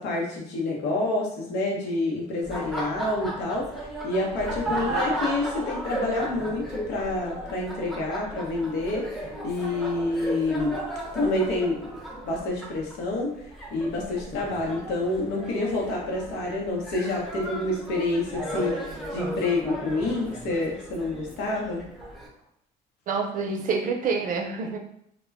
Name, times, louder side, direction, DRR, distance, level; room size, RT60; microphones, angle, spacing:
voice 1, 0.0-10.8 11.1-11.9 12.2-21.8, left 2 dB, 90° left, -2 dB, 0.8 m, -28 dB
Laughter, 2.4-22.3, right 1 dB, ahead, 0.6 m, -35 dB
voice 2, 23.1-24.8, right 5 dB, 55° right, 3 dB, 0.5 m, -27 dB
2.2 x 2.1 x 3.4 m, 0.72 s
cardioid pair, 110°, 17 cm